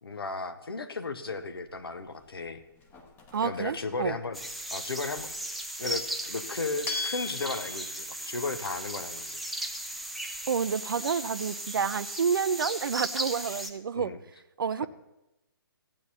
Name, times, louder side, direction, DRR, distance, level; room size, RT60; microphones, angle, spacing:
voice 1, 0.0-2.6 3.4-4.4 4.7-5.3 5.8-9.4 13.9-14.2, left 3 dB, 75° left, 10 dB, 1.0 m, -35 dB
sound 1, 1.3-10.7, left 4 dB, 15° left, 1.0 m, -43 dB
voice 2, 3.3-4.2 10.5-14.1 14.6-14.9, right 6 dB, 65° right, 17 dB, 0.5 m, -29 dB
sound 2, 4.3-13.7, right 1 dB, ahead, 0.4 m, -37 dB
14.5 x 8.6 x 4.2 m, 0.96 s
figure-of-eight pair, 135°, 12 cm